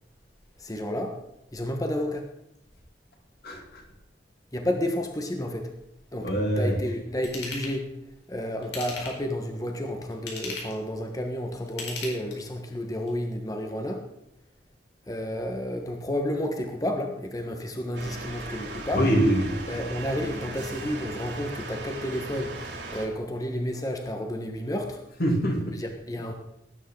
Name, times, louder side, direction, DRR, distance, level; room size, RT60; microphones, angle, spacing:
voice 1, 0.6-1.1 1.5-2.3 4.5-5.7 6.1-7.9 8.3-14.0 15.1-19.1 19.7-22.5 22.9-25.0 25.8-26.3, left 1 dB, 20° left, 4 dB, 1.3 m, -31 dB
voice 2, 3.4-3.8 6.2-6.8 18.7-19.5 25.2-25.8, equal, 60° left, 1 dB, 2.8 m, -24 dB
Ratchet pawl / Tools, 7.2-7.7 8.6-9.3 10.1-10.8 11.7-12.6 13.1-13.2, left 3 dB, 90° left, 4.5 m, -36 dB
sound 1, 17.9-23.1, right 2 dB, 85° right, 4.0 m, -38 dB
18.5 x 9.5 x 3.9 m, 0.83 s
head